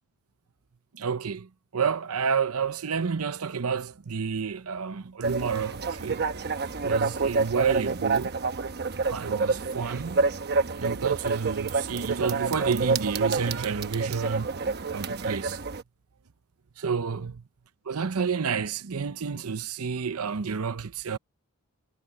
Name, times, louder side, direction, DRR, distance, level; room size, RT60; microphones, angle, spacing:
voice 1, 0.9-6.3 6.8-8.4 9.1-10.3 10.7-14.5 14.9-15.6 16.8-17.4 17.9-21.2, right 6 dB, 85° right, 0.7 m, -30 dB
sound 1, 5.2-15.8, right 4 dB, 50° right, 1.0 m, -28 dB
head